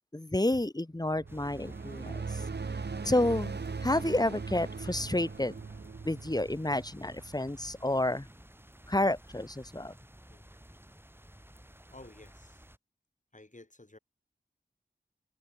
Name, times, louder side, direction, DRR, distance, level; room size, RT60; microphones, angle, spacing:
voice 1, 0.1-2.4 3.0-5.5 6.0-8.3 8.9-9.9, left 1 dB, 20° left, 1.2 m, -30 dB
sound 1, 1.0-7.7, right 4 dB, 70° right, 0.8 m, -39 dB
sound 2, 1.3-12.8, right 1 dB, 10° right, 3.3 m, -53 dB
voice 2, 11.9-12.6 13.3-14.0, left 2 dB, 45° left, 4.7 m, -53 dB
wide cardioid pair, 50°, 18 cm